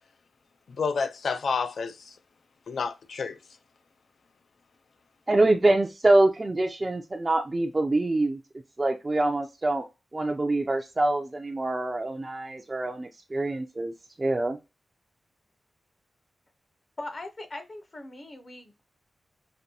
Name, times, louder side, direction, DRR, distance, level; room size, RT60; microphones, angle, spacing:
voice 1, 0.7-2.2 2.7-3.4, left 5 dB, 70° left, 0.4 m, -29 dB
voice 2, 5.3-8.4 8.8-9.8 10.1-13.9 14.2-14.6, right 2 dB, 25° right, 0.4 m, -25 dB
voice 3, 17.0-18.8, left 2 dB, 35° left, 0.6 m, -40 dB
5.2 x 2.6 x 2.7 m
wide cardioid pair, 150°, 0 cm